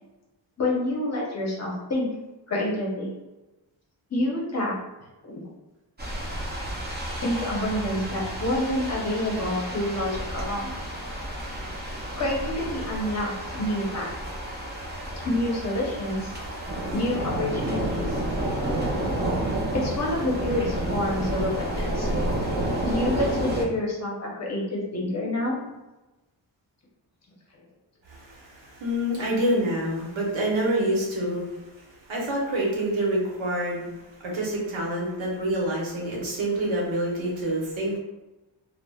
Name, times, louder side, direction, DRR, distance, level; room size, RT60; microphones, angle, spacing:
voice 1, 0.6-2.1 2.5-3.1 4.1-4.7 5.2-5.4 7.2-10.7 12.2-14.1 15.2-16.3 16.9-18.1 19.7-22.1 22.8-25.6, left 1 dB, 35° left, -3 dB, 0.7 m, -28 dB
sound 1, 6.0-23.6, right 1 dB, 25° right, 0.4 m, -30 dB
voice 2, 28.1-38.0, right 1 dB, 90° right, -3 dB, 0.9 m, -27 dB
3.2 x 2.1 x 2.2 m, 1.0 s
wide cardioid pair, 160°, 46 cm